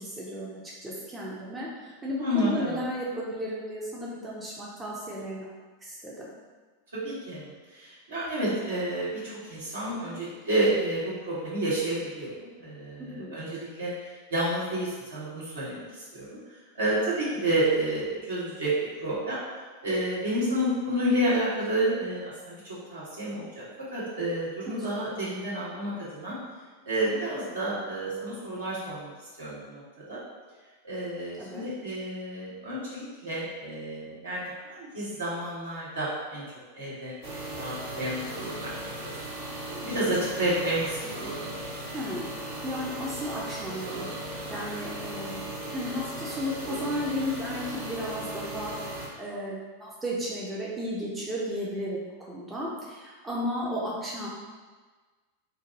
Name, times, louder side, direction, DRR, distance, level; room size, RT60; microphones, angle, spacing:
voice 1, 0.0-5.5 5.8-6.3 13.0-13.5 24.7-24.8 31.4-31.6 41.9-42.3 42.6-44.1 44.5-45.4 45.7-48.7 49.2-54.3, equal, 15° right, -5 dB, 0.6 m, -34 dB
voice 2, 2.2-2.8 6.9-18.7 19.0-19.4 19.8-23.6 23.9-26.4 26.8-29.1 29.4-29.8 30.1-30.2 30.8-36.4 36.7-37.1 37.6-39.1 39.4-41.4, right 1 dB, 70° right, -9 dB, 1.4 m, -30 dB
sound 1, 37.2-49.1, right 1 dB, 50° right, 0.9 m, -37 dB
2.7 x 2.5 x 3.9 m, 1.4 s
figure-of-eight pair, 90°, 0 cm